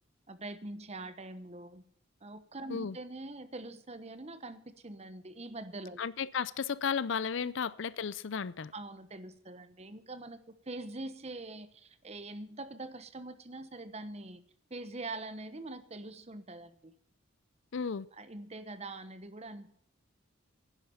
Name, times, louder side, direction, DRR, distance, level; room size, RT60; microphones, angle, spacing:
voice 1, 0.3-1.8 2.2-6.0 7.4-7.5 8.7-10.4 10.7-14.4 14.7-16.9 18.1-19.7, right 2 dB, 30° right, 1.0 m, -44 dB
voice 2, 6.0-8.7 17.7-18.1, left 6 dB, 65° left, 0.5 m, -34 dB
11.0 x 9.8 x 7.0 m
head